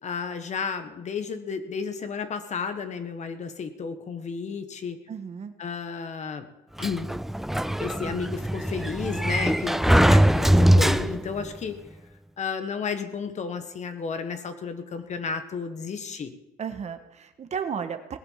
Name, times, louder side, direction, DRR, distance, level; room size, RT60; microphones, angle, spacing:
voice 1, 0.0-5.0 5.6-6.5 6.8-7.1 7.8-11.8 12.4-16.3, left 5 dB, 45° left, 9 dB, 1.6 m, -32 dB
voice 2, 5.1-5.5 16.6-18.2, right 7 dB, 40° right, 8 dB, 1.4 m, -33 dB
Sliding door, 6.8-11.5, right 1 dB, ahead, 0.4 m, -21 dB
18.5 x 8.0 x 7.4 m, 0.92 s
cardioid pair, 110°, 17 cm